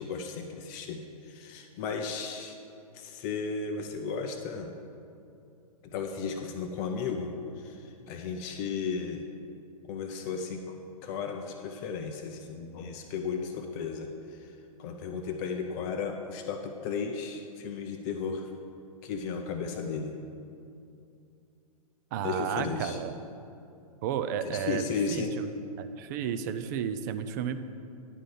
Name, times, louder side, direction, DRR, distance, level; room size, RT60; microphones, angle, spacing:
voice 1, 0.0-2.6 2.9-4.7 5.8-9.2 9.9-10.8 11.0-18.5 19.0-20.2 22.2-23.0 24.4-25.3, left 5 dB, 25° left, 4 dB, 0.5 m, -35 dB
voice 2, 22.1-23.1 24.0-24.8 25.1-25.2 25.8-27.6, right 9 dB, 30° right, 10 dB, 0.4 m, -32 dB
10.0 x 3.7 x 7.2 m, 2.6 s
figure-of-eight pair, 110°, 19 cm